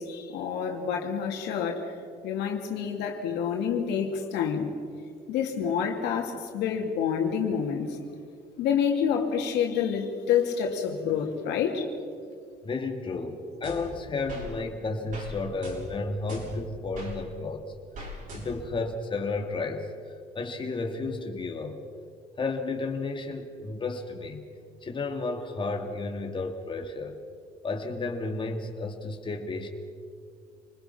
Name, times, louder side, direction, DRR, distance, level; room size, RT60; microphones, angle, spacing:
voice 1, 0.0-1.9 2.2-4.7 5.3-8.0 8.6-11.9, left 7 dB, 85° left, 2 dB, 3.0 m, -28 dB
voice 2, 12.6-17.6 18.1-21.8 22.4-24.5 24.8-27.2 27.6-29.7, left 3 dB, 30° left, 2 dB, 2.3 m, -32 dB
sound 1, 13.6-14.5 15.1-15.3 15.6-17.1 17.9-18.8, equal, 55° right, 7.1 m, -41 dB
28.0 x 20.5 x 5.9 m, 2.3 s
cardioid pair, 110°, 17 cm